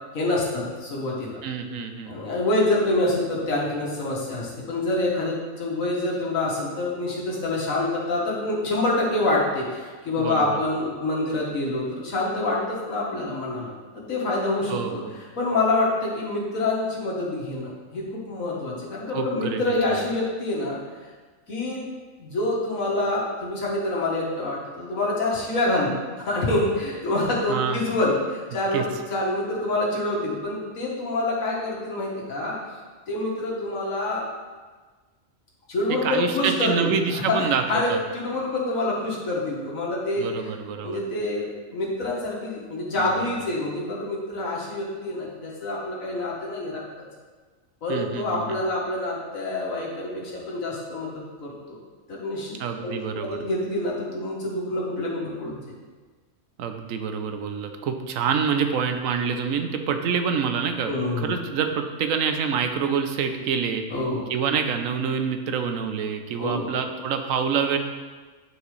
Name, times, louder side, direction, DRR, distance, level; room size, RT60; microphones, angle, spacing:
voice 1, 0.1-1.4 2.1-20.8 21.5-21.9 22.2-32.8 33.1-34.3 35.7-40.5 40.8-46.8 47.8-51.8 52.1-55.6 60.8-61.3 63.9-64.3 66.4-66.7, left 2 dB, 90° left, -4 dB, 1.9 m, -26 dB
voice 2, 1.4-2.2 10.2-10.6 14.7-15.1 19.1-19.6 19.9-20.0 27.5-27.8 28.7-28.8 36.0-38.0 40.2-41.0 43.0-43.1 47.9-48.6 52.6-53.4 56.6-60.9 61.2-63.8 64.3-67.8, right 6 dB, 90° right, 6 dB, 1.0 m, -26 dB
9.7 x 4.6 x 3.2 m, 1.4 s
omnidirectional pair, 1.4 m